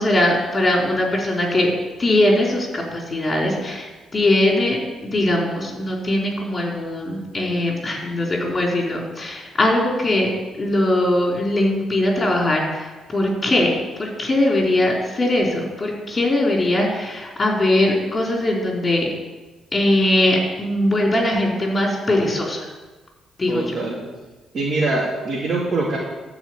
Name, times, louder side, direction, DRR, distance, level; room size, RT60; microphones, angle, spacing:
voice 1, 0.0-1.7 2.0-4.8 5.0-19.1 19.7-22.7 23.4-23.8, left 1 dB, 30° left, -1 dB, 3.8 m, -21 dB
voice 2, 23.5-24.0 24.5-26.0, right 2 dB, 50° right, -5 dB, 2.7 m, -23 dB
12.5 x 5.0 x 8.7 m, 1.2 s
cardioid pair, 90°, 0 cm